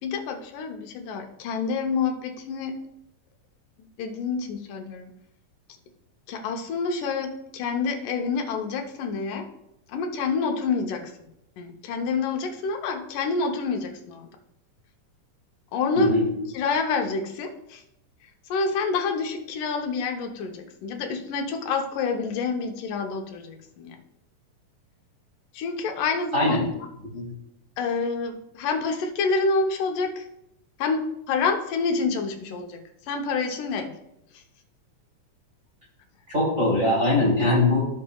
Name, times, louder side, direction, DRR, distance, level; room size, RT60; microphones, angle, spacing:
voice 1, 0.0-2.8 4.0-5.1 6.3-9.5 9.9-11.1 11.6-14.4 15.7-16.1 16.5-17.8 18.5-24.0 25.5-26.6 27.8-30.3 30.8-32.8 33.1-33.9 34.3-34.4, left 4 dB, 85° left, 3 dB, 2.5 m, -28 dB
voice 2, 26.3-26.7 27.1-27.3 36.3-37.8, left 2 dB, 25° right, -5 dB, 3.0 m, -21 dB
15.5 x 5.5 x 2.3 m, 0.81 s
omnidirectional pair, 3.6 m